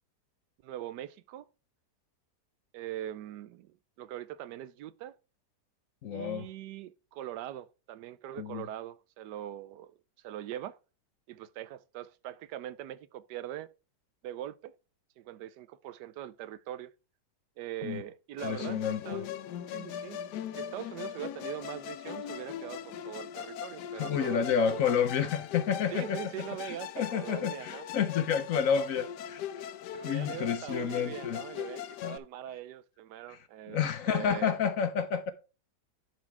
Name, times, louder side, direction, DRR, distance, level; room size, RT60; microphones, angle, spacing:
voice 1, 0.6-1.5 2.7-5.1 6.1-10.8 11.3-13.7 14.2-14.7 15.2-16.9 17.6-19.3 19.7-20.2 20.5-24.8 25.9-27.9 29.9-33.8 34.1-34.5, right 12 dB, 80° right, 1.2 m, -42 dB
voice 2, 6.0-6.5 8.4-8.7 17.8-18.0 18.4-19.2 24.0-26.2 26.7-29.7 30.0-31.4 32.0-32.2 33.3-33.4 33.7-35.3, left 7 dB, 60° left, 1.0 m, -30 dB
Musical instrument, 18.4-32.2, left 10 dB, 80° left, 1.3 m, -40 dB
11.0 x 4.3 x 4.4 m
omnidirectional pair, 1.8 m